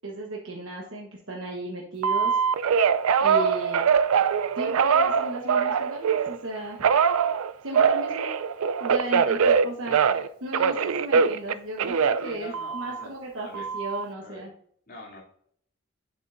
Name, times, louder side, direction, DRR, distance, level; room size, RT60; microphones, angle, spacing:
voice 1, 0.0-2.3 3.2-3.8 4.5-6.8 7.6-8.3 8.8-14.5, right 1 dB, 65° right, -2 dB, 1.2 m, -35 dB
Telephone, 2.0-6.4 6.8-10.3 10.5-13.0 13.5-14.0, right 6 dB, 90° right, 0.4 m, -23 dB
voice 2, 12.2-13.1 13.4-13.6 14.2-14.4 14.9-15.2, left 1 dB, 45° left, -6 dB, 2.7 m, -44 dB
8.1 x 7.3 x 2.6 m, 0.64 s
head